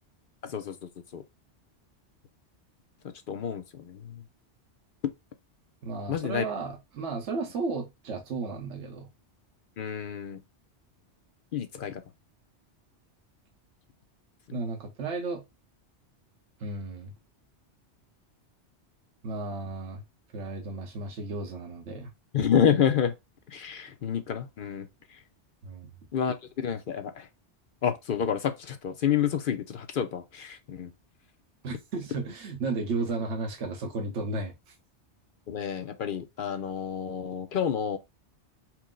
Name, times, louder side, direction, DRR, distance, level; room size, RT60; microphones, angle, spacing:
voice 1, 0.4-1.2 3.0-4.2 6.1-6.4 9.8-10.4 11.5-12.0 14.5-14.6 22.3-23.1 23.5-25.2 26.1-27.3 27.8-30.9 35.5-38.0, left 8 dB, 60° left, 0.7 m, -29 dB
voice 2, 5.8-9.1 14.5-15.4 16.6-17.1 19.2-20.0 20.3-22.1 25.6-25.9 31.6-34.7, right 3 dB, 80° right, 1.2 m, -34 dB
4.5 x 2.1 x 3.6 m
omnidirectional pair, 1.2 m